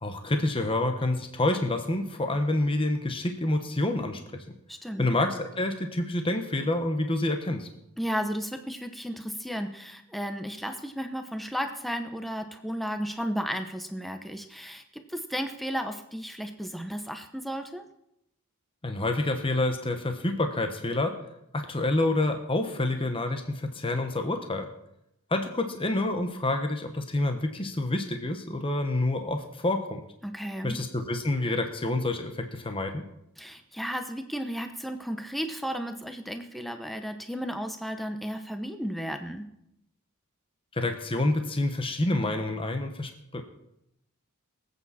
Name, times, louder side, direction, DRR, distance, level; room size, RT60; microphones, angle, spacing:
voice 1, 0.0-4.4 5.0-7.7 18.8-21.2 21.5-24.7 25.3-30.0 30.6-33.0 40.7-43.4, left 2 dB, 25° left, 6 dB, 1.2 m, -28 dB
voice 2, 4.7-5.1 8.0-17.8 30.2-30.8 33.4-39.5, equal, ahead, 6 dB, 0.9 m, -34 dB
23.5 x 8.5 x 4.2 m, 0.80 s
head